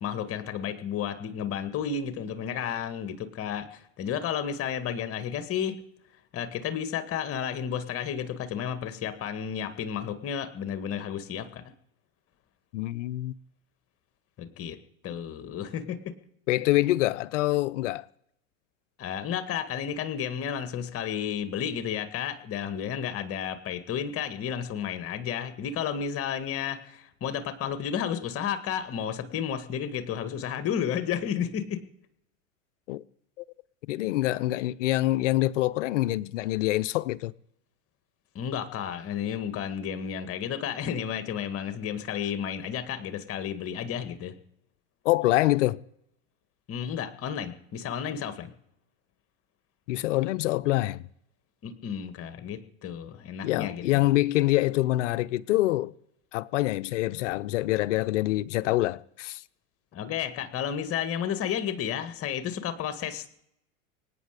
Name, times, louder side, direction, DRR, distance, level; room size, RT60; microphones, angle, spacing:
voice 1, 0.0-5.8 6.3-11.6 14.4-14.8 15.0-16.1 19.0-31.8 38.4-44.3 46.7-48.5 51.6-54.0 59.9-63.4, left 8 dB, 35° left, 1.9 m, -32 dB
voice 2, 12.7-13.3 16.5-18.1 32.9-33.0 33.4-33.5 33.9-37.3 45.0-45.8 49.9-51.0 53.4-55.9 56.3-59.4, left 17 dB, 60° left, 0.8 m, -25 dB
25.0 x 9.2 x 5.0 m
hypercardioid pair, 95°, 41 cm